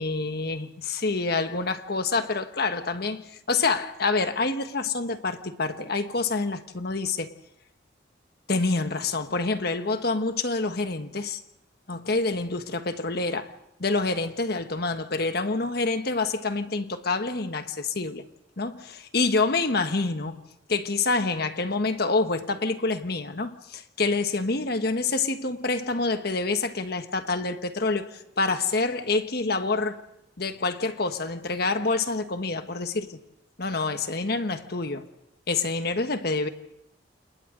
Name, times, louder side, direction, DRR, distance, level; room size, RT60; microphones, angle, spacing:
voice 1, 0.0-7.3 8.5-11.4 11.9-13.5 13.8-18.2 18.6-20.4 20.7-30.0 30.4-33.2 33.6-35.0 35.5-36.5, left 3 dB, 55° left, 1.4 m, -27 dB
28.5 x 28.5 x 3.9 m
head